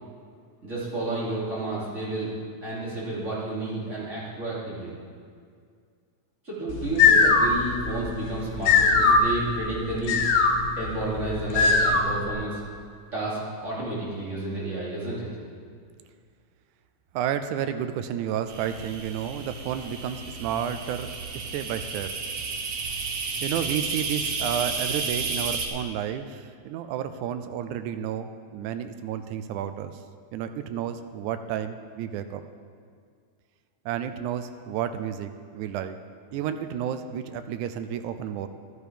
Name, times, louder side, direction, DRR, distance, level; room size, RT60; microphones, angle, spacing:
voice 1, 0.6-2.3 2.6-4.9 6.4-10.3 10.7-12.6 13.1-15.3, right 2 dB, 25° right, -8 dB, 2.8 m, -31 dB
sound 1, 6.7-12.3, left 4 dB, 75° left, 2.2 m, -21 dB
voice 2, 17.1-21.1 21.3-22.1 22.8-29.9 30.3-32.4 33.9-36.0 36.3-38.5, right 9 dB, 85° right, 9 dB, 2.1 m, -31 dB
sound 2, 18.5-25.7, right 4 dB, 65° right, 2.0 m, -32 dB
12.5 x 9.4 x 5.1 m, 2.2 s
omnidirectional pair, 3.5 m